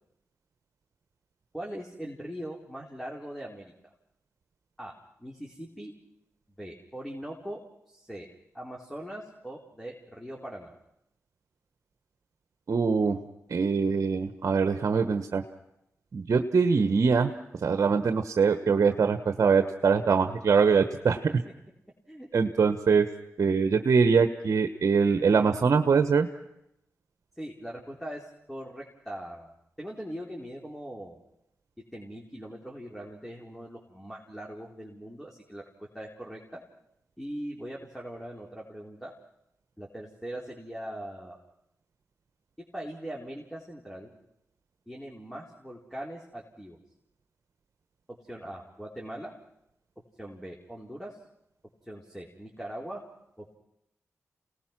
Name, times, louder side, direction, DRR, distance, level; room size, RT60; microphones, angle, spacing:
voice 1, 1.5-3.7 4.8-5.9 6.6-7.6 7.9-8.3 8.5-10.7 22.1-22.3 27.4-29.5 29.8-31.2 31.9-35.6 35.9-36.6 37.2-39.1 39.8-41.4 42.7-44.1 44.9-46.8 48.1-49.3 50.2-51.2 51.9-53.0 53.4-53.6, right 1 dB, 5° left, -2 dB, 4.3 m, -41 dB
voice 2, 12.7-13.2 13.5-15.4 16.1-17.3 17.6-21.2 22.3-23.1 23.4-26.3, right 5 dB, 65° right, 8 dB, 1.2 m, -23 dB
28.0 x 19.0 x 6.1 m, 0.82 s
cardioid pair, 45°, 6 cm